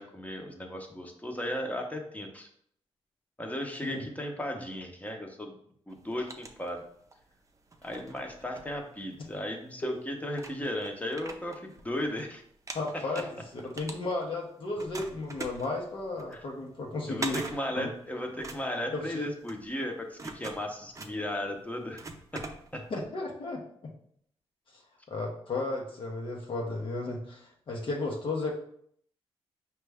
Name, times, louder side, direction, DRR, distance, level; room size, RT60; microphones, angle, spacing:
voice 1, 0.0-2.5 3.4-5.6 5.9-6.9 7.8-12.4 12.9-13.2 16.3-16.5 17.1-22.0 22.3-22.4 22.7-22.8, left 1 dB, 15° left, 3 dB, 0.8 m, -36 dB
sound 1, 5.9-7.2 7.7-9.4 9.9-10.0 10.3-12.2 12.5-14.4 14.8-23.0, right 3 dB, 30° right, 0.6 m, -43 dB
voice 2, 12.7-13.3 13.7-17.4 17.8-17.9 18.9-19.3 22.9-23.6 25.1-28.5, left 3 dB, 55° left, -2 dB, 0.8 m, -34 dB
5.0 x 2.3 x 3.4 m, 0.66 s
cardioid pair, 65°, 11 cm